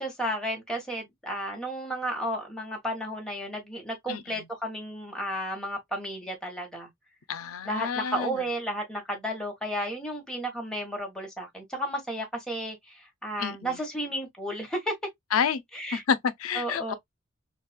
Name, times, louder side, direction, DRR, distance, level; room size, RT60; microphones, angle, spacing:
voice 1, 0.0-6.9 7.6-14.9 15.7-16.0 16.5-16.9, equal, 5° left, 1.2 m, -33 dB
voice 2, 4.1-4.4 7.3-8.4 13.4-13.8 15.3-15.6 15.9-16.9, left 7 dB, 90° left, 0.5 m, -29 dB
3.9 x 2.4 x 2.2 m
head